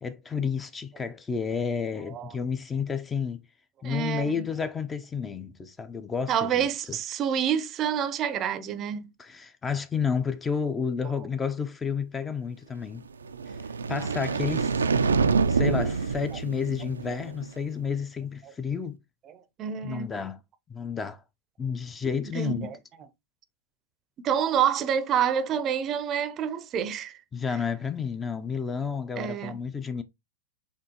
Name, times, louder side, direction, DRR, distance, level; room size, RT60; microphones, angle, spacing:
voice 1, 0.0-3.4 3.8-7.0 9.2-13.1 13.9-14.7 15.5-19.0 19.8-20.4 20.7-21.2 21.6-22.7 27.3-30.0, left 6 dB, 20° left, 0.4 m, -31 dB
voice 2, 2.0-2.4 3.8-4.5 6.3-9.1 11.2-11.3 16.3-16.4 18.4-18.5 19.3-20.1 22.3-22.8 24.2-27.2 29.2-29.6, right 8 dB, 35° right, 0.5 m, -28 dB
sound 1, 13.2-17.5, right 5 dB, 90° right, 0.3 m, -26 dB
4.3 x 3.1 x 2.9 m
hypercardioid pair, 105°, 0 cm